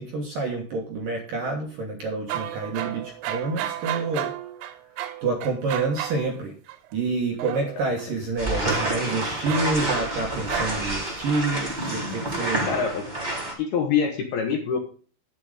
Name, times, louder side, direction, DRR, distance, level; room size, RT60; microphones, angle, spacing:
voice 1, 0.0-4.3 5.2-6.5 6.9-12.8, right 3 dB, 60° right, 1 dB, 2.4 m, -28 dB
sound 1, 2.3-6.3 6.7-6.9 7.4-8.1 8.7-10.2 10.5-11.0, right 13 dB, 90° right, 3.7 m, -33 dB
sound 2, 8.4-13.5, right 1 dB, 10° right, 3.1 m, -28 dB
voice 2, 12.7-13.1 13.6-14.8, left 6 dB, 65° left, 4 dB, 2.8 m, -24 dB
11.5 x 8.0 x 5.1 m, 0.40 s
omnidirectional pair, 6.0 m